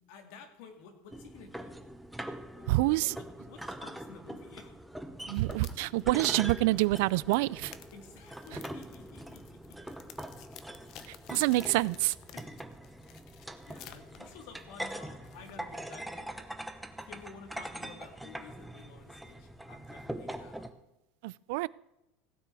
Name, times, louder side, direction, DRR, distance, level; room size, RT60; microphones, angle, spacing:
voice 1, 0.1-1.8 2.6-5.0 7.9-10.1 12.3-12.6 13.4-16.5 17.0-20.7, left 5 dB, 60° left, 5 dB, 2.6 m, -52 dB
sound 1, 1.1-20.7, right 1 dB, ahead, 0.7 m, -43 dB
voice 2, 2.7-3.2 5.3-7.7 11.3-12.1 21.2-21.7, right 20 dB, 65° right, 22 dB, 0.4 m, -27 dB
sound 2, 5.1-15.9, left 10 dB, 45° left, 1.0 m, -54 dB
16.0 x 9.2 x 4.8 m, 0.90 s
cardioid pair, 170°, 0 cm